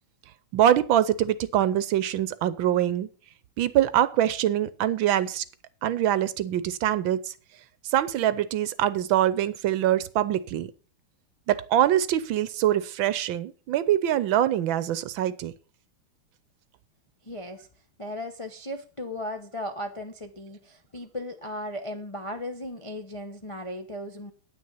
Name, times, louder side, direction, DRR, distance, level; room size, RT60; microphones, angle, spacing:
voice 1, 0.5-3.1 3.6-5.4 5.8-7.3 7.8-10.7 11.5-15.5, right 11 dB, 70° right, 16 dB, 1.4 m, -24 dB
voice 2, 17.2-17.7 18.0-24.3, left 1 dB, 35° left, 4 dB, 0.5 m, -36 dB
9.5 x 9.5 x 5.5 m, 0.38 s
omnidirectional pair, 2.4 m